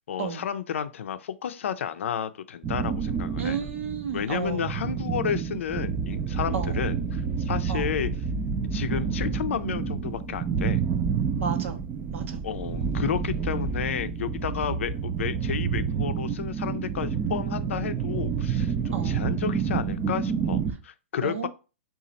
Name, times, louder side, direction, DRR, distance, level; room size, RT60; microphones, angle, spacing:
voice 1, 0.1-3.6 4.1-8.1 8.7-10.8 12.4-21.5, left 8 dB, 80° left, 0.5 m, -32 dB
sound 1, 2.6-20.7, right 6 dB, 20° right, 0.4 m, -29 dB
voice 2, 3.4-4.7 6.5-6.8 7.7-7.9 11.4-11.8 12.1-12.4 14.6-14.8 18.9-19.2 21.2-21.5, right 7 dB, 85° right, 0.9 m, -32 dB
4.0 x 2.4 x 3.9 m
hypercardioid pair, 155°, 7 cm